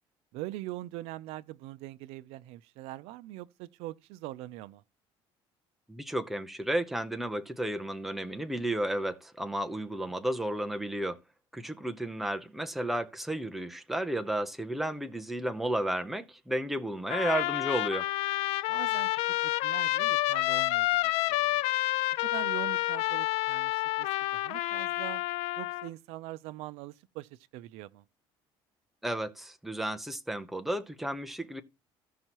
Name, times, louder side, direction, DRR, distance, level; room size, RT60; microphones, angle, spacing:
voice 1, 0.3-4.8 10.1-10.2 18.7-21.1 21.4-21.6 22.2-25.2 25.6-28.0, right 16 dB, 85° right, 0.5 m, -42 dB
voice 2, 5.9-11.2 11.5-18.1 29.0-31.6, right 1 dB, ahead, 0.7 m, -33 dB
Trumpet, 17.1-25.9, left 17 dB, 75° left, 0.4 m, -29 dB
15.5 x 5.5 x 3.0 m
cardioid pair, 145°, 10 cm